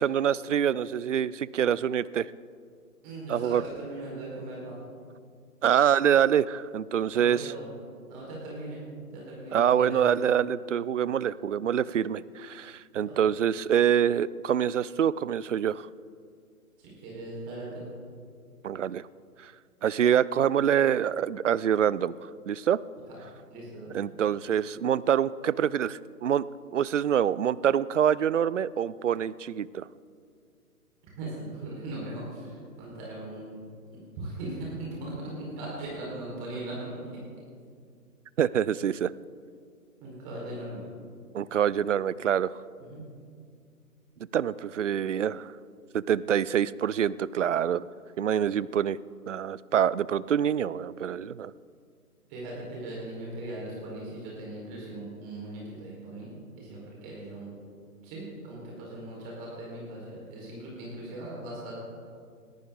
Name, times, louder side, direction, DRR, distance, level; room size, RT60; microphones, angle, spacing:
voice 1, 0.0-2.3 3.3-3.6 5.6-7.4 9.5-15.9 18.6-19.1 19.4-19.5 19.8-22.1 22.5-22.8 23.9-26.5 26.7-29.8 38.4-39.1 41.3-42.5 44.3-45.5 45.9-47.9 48.2-49.0 49.3-51.5, right 9 dB, 55° right, 20 dB, 0.5 m, -25 dB
voice 2, 3.0-4.8 7.1-7.7 8.1-8.8 9.1-10.3 12.9-13.1 16.8-17.8 23.5-24.0 31.2-33.6 34.2-37.0 40.0-40.9 42.8-43.0 52.3-57.5 58.0-61.7, right 1 dB, 25° right, -4 dB, 4.8 m, -39 dB
21.0 x 14.5 x 4.0 m, 2.2 s
figure-of-eight pair, 140°, 46 cm